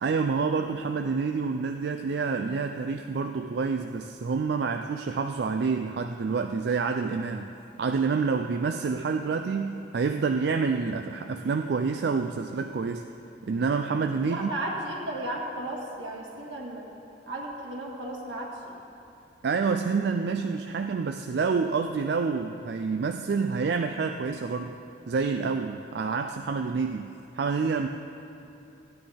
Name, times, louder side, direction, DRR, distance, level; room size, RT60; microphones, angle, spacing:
voice 1, 0.0-7.5 7.8-13.0 13.5-14.5 19.4-24.8 25.1-27.9, right 5 dB, 65° right, 6 dB, 0.4 m, -28 dB
voice 2, 14.2-16.9 17.3-18.8, right 1 dB, 85° right, -2 dB, 1.9 m, -34 dB
15.5 x 9.7 x 3.5 m, 2.9 s
head